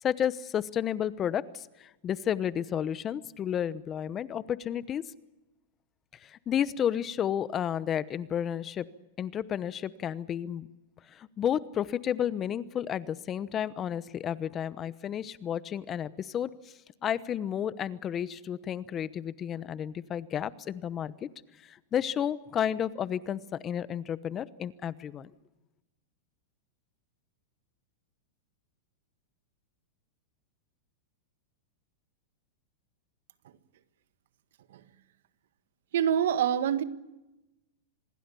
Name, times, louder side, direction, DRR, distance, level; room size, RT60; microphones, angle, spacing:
voice 1, 0.0-5.0 6.2-8.9 9.2-10.7 11.1-16.7 17.0-21.3 21.6-25.3, left 9 dB, 25° left, 17 dB, 0.9 m, -32 dB
voice 2, 35.9-36.8, right 9 dB, 75° right, 13 dB, 1.6 m, -25 dB
26.0 x 21.0 x 7.0 m, 0.99 s
supercardioid pair, 140°, 0 cm